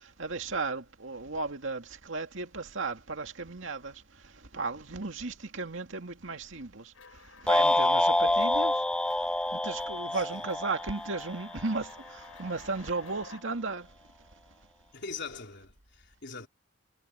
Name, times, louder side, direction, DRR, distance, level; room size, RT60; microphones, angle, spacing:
voice 1, 0.2-3.9 4.5-6.9 7.4-8.8 9.5-13.9, right 3 dB, 70° right, 2.4 m, -35 dB
sound 1, 6.9-13.4, left 5 dB, 80° left, 7.9 m, -53 dB
sound 2, 7.5-11.8, left 1 dB, 5° left, 0.4 m, -27 dB
voice 2, 14.9-16.5, left 4 dB, 60° left, 4.1 m, -42 dB
head